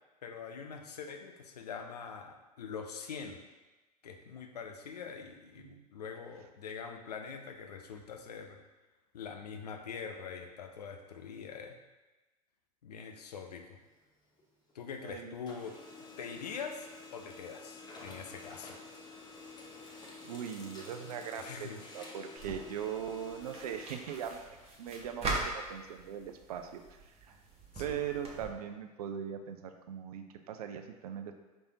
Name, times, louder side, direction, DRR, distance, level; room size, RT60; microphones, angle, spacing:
voice 1, 0.2-3.4 4.0-8.6 9.1-11.8 12.8-13.8 14.7-15.8 16.2-18.8 19.0-19.2 21.4-21.9 27.7-28.0, left 6 dB, 80° left, 5 dB, 0.6 m, -44 dB
Printer, 13.8-15.0 15.3-24.9, left 3 dB, 20° left, 0.9 m, -51 dB
voice 2, 15.0-15.4 19.9-24.4 24.8-27.4 27.8-31.3, right 8 dB, 70° right, 6 dB, 0.5 m, -40 dB
sound 1, 22.4-28.4, right 2 dB, 30° right, 1.1 m, -41 dB
5.4 x 3.4 x 2.8 m, 1.2 s
figure-of-eight pair, 80°, 20 cm